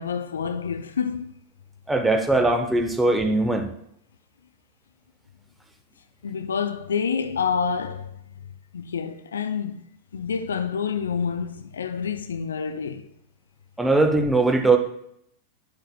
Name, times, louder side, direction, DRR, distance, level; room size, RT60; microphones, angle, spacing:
voice 1, 0.0-1.3 6.2-8.2 8.7-9.9 10.1-13.1, left 6 dB, 70° left, 0.5 m, -28 dB
voice 2, 1.9-3.7 13.8-14.8, right 2 dB, 5° right, 1.0 m, -20 dB
9.7 x 7.8 x 2.3 m
figure-of-eight pair, 90°, 0 cm